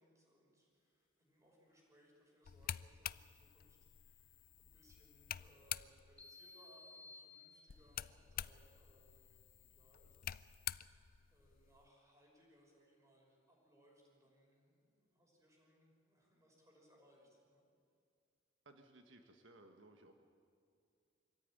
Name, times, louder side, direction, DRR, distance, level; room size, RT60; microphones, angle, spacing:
voice 1, 0.0-11.0 11.3-17.6, equal, 15° right, -1 dB, 5.9 m, -70 dB
sound 1, 2.4-6.2 7.7-11.9, left 11 dB, 50° left, 0.4 m, -48 dB
sound 2, 6.2-8.1, left 3 dB, 5° left, 3.9 m, -58 dB
voice 2, 18.6-20.1, right 2 dB, 90° right, 5 dB, 1.5 m, -61 dB
25.5 x 14.5 x 9.1 m, 2.3 s
head